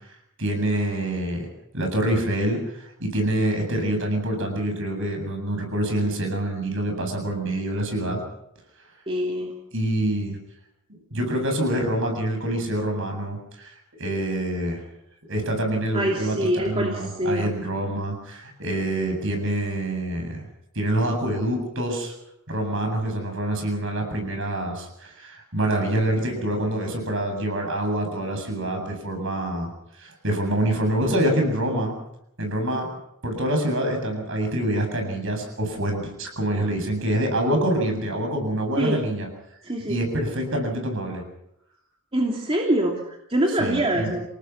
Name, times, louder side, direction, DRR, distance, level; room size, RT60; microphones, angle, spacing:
voice 1, 0.4-1.5 1.7-8.2 9.7-10.4 11.1-13.7 14.0-14.8 15.3-20.4 20.7-22.1 22.5-29.7 30.0-31.9 32.4-32.9 33.2-39.3 39.9-41.2 43.6-44.1, right 1 dB, 60° right, 4 dB, 7.9 m, -26 dB
voice 2, 9.1-9.5 15.9-17.5 38.8-39.0 39.6-40.0 42.1-44.2, right 1 dB, 25° right, -1 dB, 2.9 m, -24 dB
28.5 x 18.5 x 6.0 m, 0.78 s
head